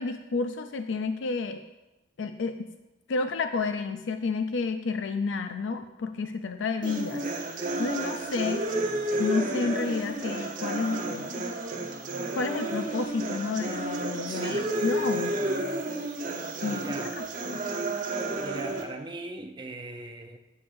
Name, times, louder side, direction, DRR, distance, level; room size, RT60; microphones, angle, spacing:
voice 1, 0.0-1.6 2.2-2.7 3.1-8.7 9.2-11.5 12.4-15.4 16.6-16.8 17.5-17.6, left 4 dB, 80° left, 8 dB, 0.4 m, -30 dB
sound 1, 6.8-18.8, right 2 dB, 45° right, 0.9 m, -31 dB
voice 2, 14.3-14.7 16.5-17.2 18.3-20.4, right 2 dB, 25° right, 4 dB, 0.6 m, -40 dB
9.6 x 7.7 x 2.6 m, 1.0 s
head